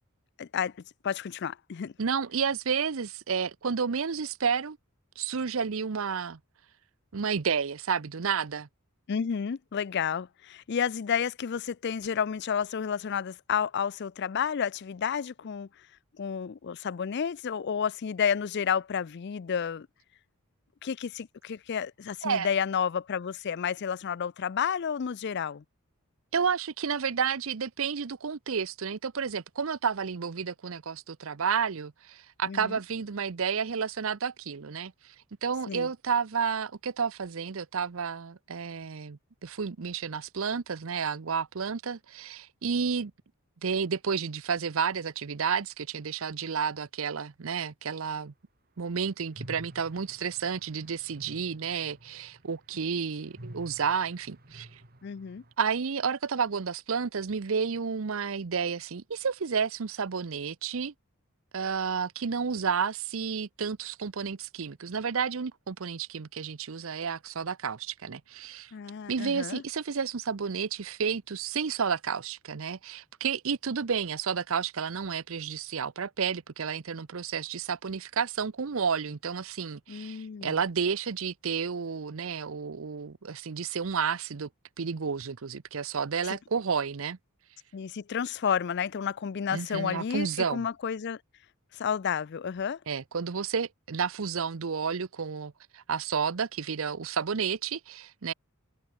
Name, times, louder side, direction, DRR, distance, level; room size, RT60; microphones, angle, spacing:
voice 1, 0.4-0.7 1.0-1.9 9.1-15.7 16.2-19.9 20.8-25.6 32.5-32.8 35.7-35.9 55.0-55.4 68.7-69.6 79.9-80.6 87.7-91.2 91.7-92.8, left 7 dB, 50° left, 0.4 m, -31 dB
voice 2, 2.0-4.8 5.2-6.4 7.1-8.7 22.2-22.5 26.3-35.1 35.4-43.1 43.6-48.3 48.8-54.8 55.6-60.9 61.5-68.7 69.1-84.5 84.8-87.2 89.5-90.6 92.9-98.3, right 6 dB, 65° right, 0.6 m, -31 dB
sound 1, 49.3-55.5, right 1 dB, 40° right, 2.5 m, -50 dB
head